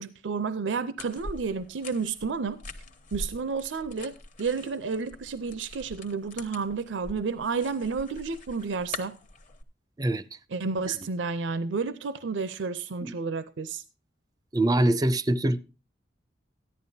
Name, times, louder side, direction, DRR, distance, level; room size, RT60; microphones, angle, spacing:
voice 1, 0.0-2.6 3.1-9.2 10.5-13.8, right 4 dB, 80° right, 0.5 m, -31 dB
sound 1, 1.0-9.6, left 2 dB, 45° left, 1.1 m, -44 dB
voice 2, 14.5-15.6, right 1 dB, 20° right, 0.4 m, -24 dB
14.0 x 11.0 x 2.7 m
head